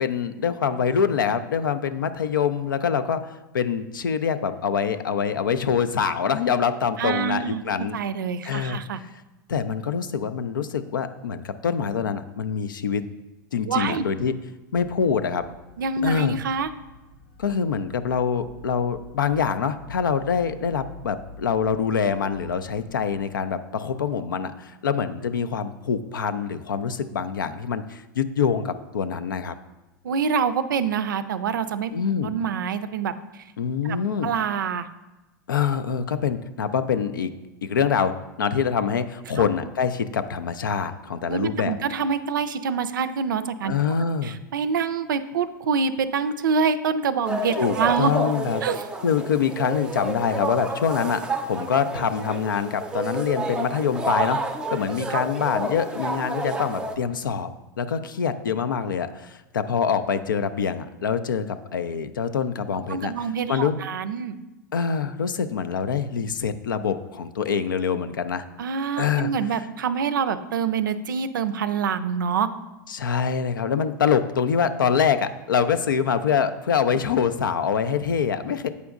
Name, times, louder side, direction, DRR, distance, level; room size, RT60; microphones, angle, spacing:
voice 1, 0.0-8.0 8.4-8.8 9.5-13.0 13.5-14.3 14.7-15.4 16.0-16.4 17.4-29.5 31.9-32.3 33.6-34.3 35.5-37.3 37.6-41.8 43.6-44.3 47.6-48.6 49.0-57.5 57.8-63.8 64.7-68.4 69.0-69.3 72.9-78.7, left 7 dB, 80° left, 11 dB, 0.4 m, -25 dB
voice 2, 7.0-7.6 7.9-9.0 13.7-14.1 15.8-16.7 30.0-31.9 32.2-33.1 33.8-34.0 34.2-34.9 39.4-39.5 41.3-43.7 44.2-48.1 48.6-48.9 55.1-55.2 62.9-64.3 68.6-72.5, right 6 dB, 75° right, 12 dB, 0.4 m, -26 dB
sound 1, 14.7-23.3, left 2 dB, 55° left, 0.8 m, -47 dB
sound 2, 47.2-57.0, right 2 dB, 10° right, 0.5 m, -30 dB
8.1 x 5.0 x 2.4 m, 1.1 s
hypercardioid pair, 100°, 11 cm